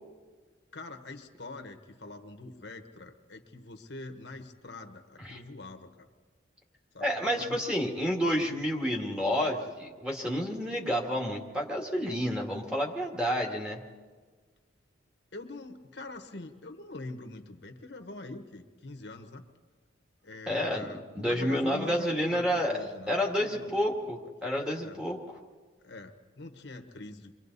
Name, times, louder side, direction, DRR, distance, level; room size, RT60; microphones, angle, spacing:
voice 1, 0.7-6.1 6.9-7.6 8.4-8.5 15.3-19.4 20.2-23.7 24.8-25.0 25.8-27.3, left 2 dB, 65° left, 6 dB, 1.3 m, -44 dB
voice 2, 7.0-13.8 20.5-20.9 21.1-22.8 23.1-25.2, equal, 5° right, -1 dB, 2.0 m, -29 dB
29.5 x 23.5 x 4.1 m, 1.5 s
head